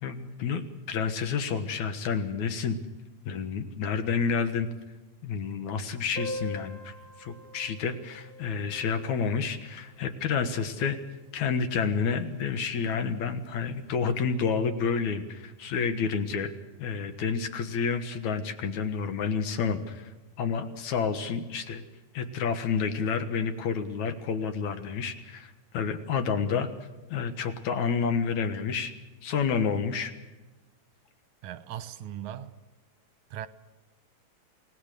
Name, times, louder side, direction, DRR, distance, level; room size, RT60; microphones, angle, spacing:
voice 1, 0.0-2.8 3.3-4.7 5.2-11.0 11.3-16.5 16.8-20.1 20.4-21.8 22.1-26.7 27.1-28.9 29.2-30.1, left 6 dB, 75° left, 2.7 m, -29 dB
Piano, 6.2-11.5 11.8-11.9 12.1-12.2 12.6-12.7 13.4-13.6, left 1 dB, 40° left, 7.1 m, -43 dB
voice 2, 31.4-32.6 33.3-33.5, right 10 dB, 85° right, 2.4 m, -38 dB
28.5 x 19.0 x 6.7 m
omnidirectional pair, 3.4 m